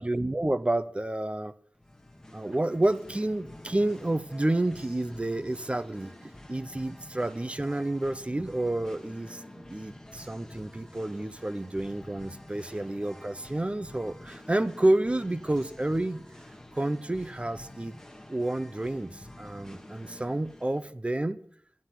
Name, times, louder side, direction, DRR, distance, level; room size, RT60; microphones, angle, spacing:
voice 1, 0.0-1.5 2.3-16.2 16.7-17.9 18.3-21.4, right 1 dB, 25° right, 12 dB, 0.6 m, -29 dB
Singing, 1.7-20.9, left 1 dB, 10° left, 1.3 m, -48 dB
11.5 x 11.5 x 5.9 m, 0.63 s
wide cardioid pair, 85°, 5 cm